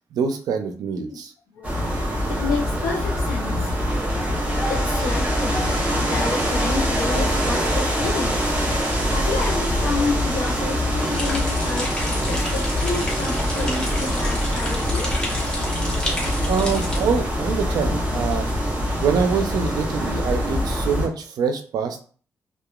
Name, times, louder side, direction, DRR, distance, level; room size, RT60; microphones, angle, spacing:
voice 1, 0.1-1.3 16.1-18.5 19.0-22.0, right 6 dB, 80° right, 6 dB, 0.4 m, -25 dB
sound 1, 1.6-21.1, equal, 25° right, 0.9 m, -24 dB
voice 2, 2.3-3.7 4.3-4.4 4.7-8.5 9.1-12.0 12.3-15.2, left 4 dB, 70° left, -2 dB, 0.5 m, -30 dB
sound 2, 11.1-17.0, left 1 dB, 15° left, 0.8 m, -31 dB
2.8 x 2.2 x 2.3 m, 0.43 s
cardioid pair, 105°, 6 cm